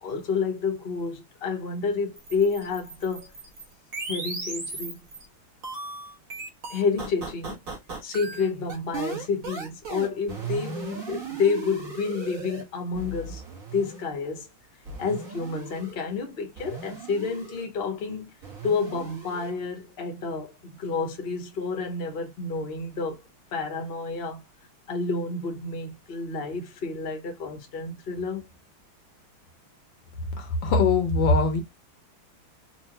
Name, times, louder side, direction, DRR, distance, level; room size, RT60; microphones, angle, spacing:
voice 1, 0.0-3.3 4.1-5.0 6.7-7.6 8.0-13.4 13.7-14.5 15.0-18.3 18.6-23.2 23.5-24.4 24.9-28.4, left 4 dB, 40° left, 0.9 m, -29 dB
sound 1, 2.2-5.2 5.6-12.6 12.9-14.0 14.9-15.9 16.6-17.7 18.4-19.5, right 4 dB, 45° right, 1.5 m, -37 dB
voice 2, 30.4-31.6, left 3 dB, 70° left, 1.4 m, -22 dB
4.3 x 2.5 x 2.9 m
omnidirectional pair, 2.3 m